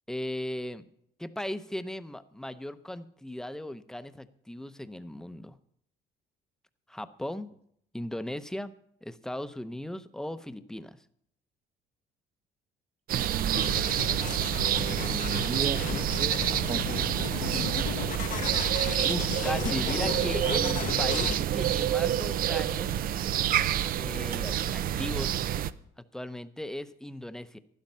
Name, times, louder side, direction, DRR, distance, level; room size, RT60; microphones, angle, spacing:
voice 1, 0.1-0.9 1.2-5.6 6.9-7.5 7.9-8.7 9.0-11.0 18.4-22.9 23.9-25.4 26.1-27.6, left 1 dB, 5° left, 12 dB, 0.7 m, -37 dB
voice 2, 13.1-13.9 14.6-15.8 16.1-16.9, right 6 dB, 40° right, 12 dB, 0.9 m, -36 dB
sound 1, 13.1-25.7, right 11 dB, 60° right, 0.6 m, -28 dB
sound 2, 13.5-21.4, left 9 dB, 50° left, 0.8 m, -35 dB
12.0 x 11.5 x 5.4 m, 0.70 s
cardioid pair, 110°, 17 cm